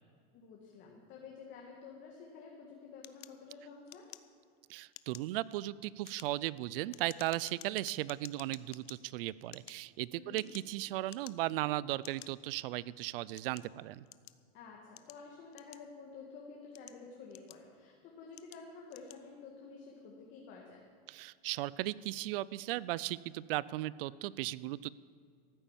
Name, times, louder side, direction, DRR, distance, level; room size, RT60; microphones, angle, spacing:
voice 1, 0.3-4.1 10.1-10.4 14.5-20.8, left 5 dB, 35° left, -1 dB, 1.8 m, -51 dB
sound 1, 3.0-4.6 4.9-5.4 5.9-9.0 9.4-10.8 11.1-11.6 12.0-12.3 13.0-14.4 15.0-16.1 16.6-17.8 18.3-18.6 18.9-19.2, left 16 dB, 75° left, 0.7 m, -53 dB
voice 2, 4.7-14.1 21.1-24.9, right 16 dB, 65° right, 20 dB, 0.5 m, -36 dB
14.5 x 9.1 x 7.2 m, 2.2 s
supercardioid pair, 155°, 30 cm